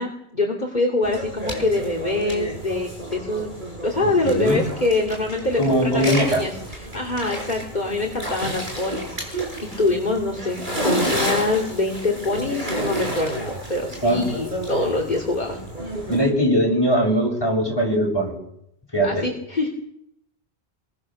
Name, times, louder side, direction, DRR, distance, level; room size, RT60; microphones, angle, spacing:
voice 1, 0.0-13.4 13.7-15.6 19.0-19.7, left 2 dB, 45° left, 0 dB, 3.0 m, -25 dB
sound 1, 1.0-16.3, right 1 dB, 50° right, 7.3 m, -30 dB
voice 2, 4.0-4.6 5.6-6.4 14.0-14.3 16.1-18.3 18.9-19.3, equal, 25° left, -1 dB, 7.6 m, -20 dB
25.0 x 23.0 x 6.6 m, 0.76 s
omnidirectional pair, 1.0 m